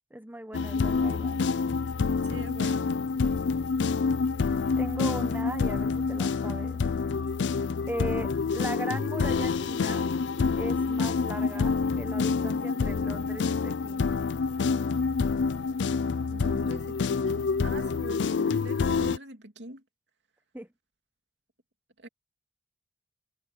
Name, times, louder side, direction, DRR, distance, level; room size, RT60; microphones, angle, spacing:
voice 1, 0.1-1.4 4.8-6.8 7.9-10.1 10.6-14.1 20.5-20.7, right 1 dB, 10° right, 1.3 m, -38 dB
sound 1, 0.5-19.2, left 4 dB, 85° left, 0.4 m, -27 dB
voice 2, 2.1-2.9 16.3-19.8 22.0-22.1, right 1 dB, 80° right, 2.6 m, -43 dB
Dog, 8.6-15.3, equal, 60° left, 7.0 m, -51 dB
head